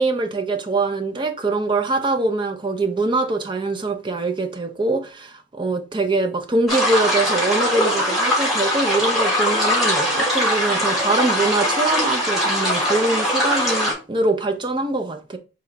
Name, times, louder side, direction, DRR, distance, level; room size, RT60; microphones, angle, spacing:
voice 1, 0.0-15.4, right 2 dB, 25° right, 0.5 m, -23 dB
sound 1, 6.7-13.9, equal, ahead, 1.6 m, -21 dB
3.7 x 2.9 x 4.4 m
head